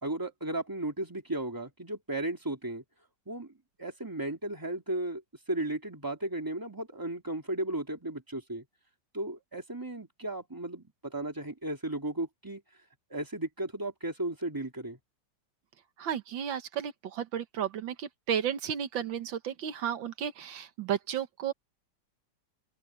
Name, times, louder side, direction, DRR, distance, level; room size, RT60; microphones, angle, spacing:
voice 1, 0.0-2.8 3.3-3.5 3.8-5.2 5.5-8.6 9.1-12.6 13.1-15.0, right 1 dB, 10° right, 2.7 m, -35 dB
voice 2, 16.0-21.5, right 9 dB, 85° right, 1.9 m, -33 dB
omnidirectional pair, 2.0 m